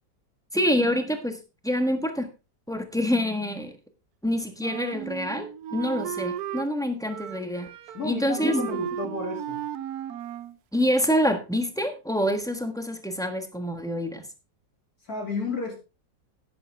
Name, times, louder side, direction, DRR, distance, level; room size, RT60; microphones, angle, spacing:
voice 1, 0.5-2.3 2.7-3.7 4.2-7.7 8.0-8.8 10.7-14.2, equal, ahead, 7 dB, 1.2 m, -26 dB
Wind instrument woodwind instrument, 4.6-6.7 7.1-8.1 8.4-10.6, right 11 dB, 65° right, 1.1 m, -35 dB
voice 2, 7.9-9.6 15.1-15.7, left 3 dB, 55° left, 1 dB, 3.0 m, -31 dB
11.0 x 9.9 x 3.5 m, 0.28 s
omnidirectional pair, 1.9 m